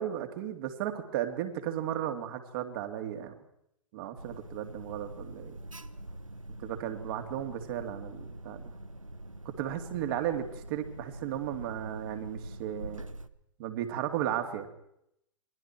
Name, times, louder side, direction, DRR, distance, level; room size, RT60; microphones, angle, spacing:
voice 1, 0.0-3.3 3.9-5.6 6.6-8.7 9.4-13.0 13.6-14.7, right 11 dB, 45° right, 6 dB, 3.0 m, -35 dB
Alarm, 4.2-13.3, right 1 dB, 85° right, 1.0 m, -44 dB
28.5 x 22.5 x 4.6 m, 0.79 s
figure-of-eight pair, 105°, 16 cm